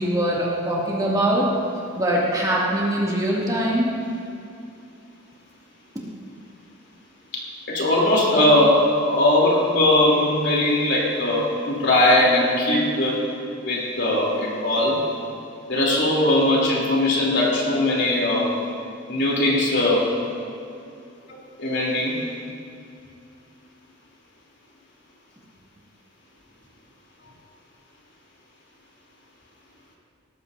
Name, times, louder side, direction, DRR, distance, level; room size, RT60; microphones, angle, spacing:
voice 1, 0.0-1.5 2.0-3.9, right 1 dB, 20° right, -6 dB, 2.4 m, -22 dB
voice 2, 7.3-13.2 13.6-15.0 15.7-18.5 19.1-20.1 21.6-22.2, left 1 dB, 60° left, -4 dB, 3.3 m, -20 dB
18.0 x 14.5 x 2.7 m, 2.5 s
head